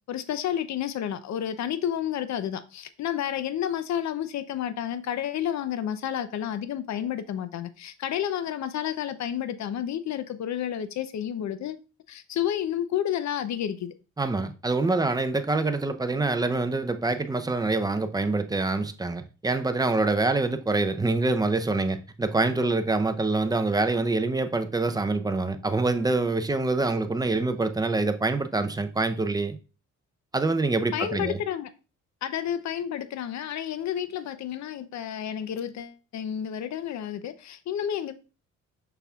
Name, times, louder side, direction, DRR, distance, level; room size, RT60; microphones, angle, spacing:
voice 1, 0.1-11.8 12.1-13.9 30.9-31.7 32.2-38.1, left 10 dB, 65° left, 0.7 m, -30 dB
voice 2, 14.2-29.6 30.3-31.4, right 3 dB, 15° right, 0.7 m, -25 dB
6.8 x 5.9 x 2.4 m
cardioid pair, 90°, 30 cm